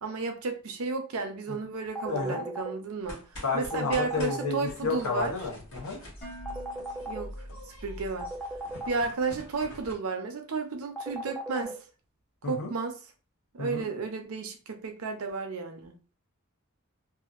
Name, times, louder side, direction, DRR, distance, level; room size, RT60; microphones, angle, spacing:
voice 1, 0.0-3.2 3.5-5.3 7.1-7.3 7.8-8.3 8.9-11.8 12.4-13.0 13.5-15.9, right 4 dB, 75° right, 0.6 m, -32 dB
sound 1, 2.0-2.7 3.7-4.5 6.5-7.2 8.2-9.0 11.0-11.7, right 1 dB, ahead, 0.4 m, -36 dB
voice 2, 2.1-2.4 3.4-6.0 12.4-12.7 13.6-13.9, left 4 dB, 90° left, 1.0 m, -31 dB
sound 2, 3.0-9.9, equal, 60° left, 1.3 m, -45 dB
Dishes pots and pans, 6.2-8.3, right 1 dB, 30° left, 1.2 m, -50 dB
2.7 x 2.5 x 2.4 m
head